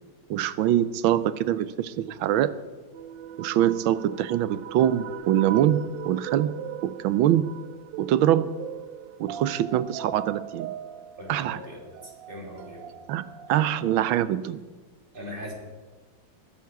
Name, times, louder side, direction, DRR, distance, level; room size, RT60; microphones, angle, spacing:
voice 1, 0.3-2.5 3.4-6.5 6.8-7.5 8.0-8.6 9.2-10.7 11.3-11.6 13.1-14.6, right 11 dB, 90° right, 16 dB, 1.5 m, -24 dB
sound 1, 2.9-13.9, right 10 dB, 70° right, 1.2 m, -39 dB
voice 2, 11.2-12.9 15.1-15.5, equal, 25° right, -2 dB, 3.6 m, -40 dB
20.5 x 10.5 x 4.7 m, 1.3 s
omnidirectional pair, 2.1 m